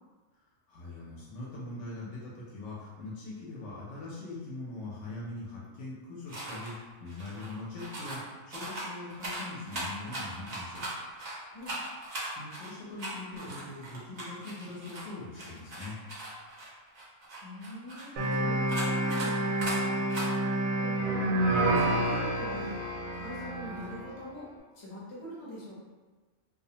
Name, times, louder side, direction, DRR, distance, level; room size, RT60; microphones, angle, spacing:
voice 1, 0.7-6.7 7.0-10.8 12.4-16.0, left 2 dB, 70° left, -6 dB, 0.9 m, -42 dB
sound 1, 6.3-6.7 7.1-8.2 8.5-11.3 11.6-15.1 15.3-18.3 18.7-19.3 19.6-19.8 20.1-20.2, right 2 dB, 55° right, 0.4 m, -39 dB
voice 2, 17.4-20.0 20.8-21.4 21.7-22.8 23.1-25.8, equal, 30° left, -7 dB, 0.6 m, -43 dB
sound 2, 18.2-24.1, right 1 dB, 90° right, 1.0 m, -29 dB
2.4 x 2.0 x 2.7 m, 1.3 s
omnidirectional pair, 1.4 m